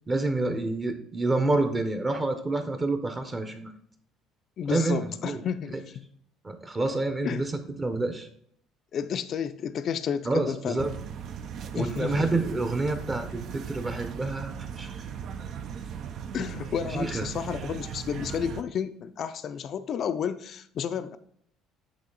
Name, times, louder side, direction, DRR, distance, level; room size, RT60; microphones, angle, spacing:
voice 1, 0.1-3.7 4.7-5.4 6.4-7.5 7.8-8.3 10.2-10.9 11.7-15.1 16.9-17.3, right 2 dB, 25° right, 7 dB, 0.8 m, -28 dB
voice 2, 4.6-6.0 7.2-7.5 8.9-10.8 11.8-12.3 16.3-21.2, left 7 dB, 50° left, 12 dB, 0.4 m, -31 dB
sound 1, 10.8-18.6, right 8 dB, 60° right, 0.5 m, -38 dB
8.4 x 2.9 x 3.9 m, 0.65 s
supercardioid pair, 90°, 0 cm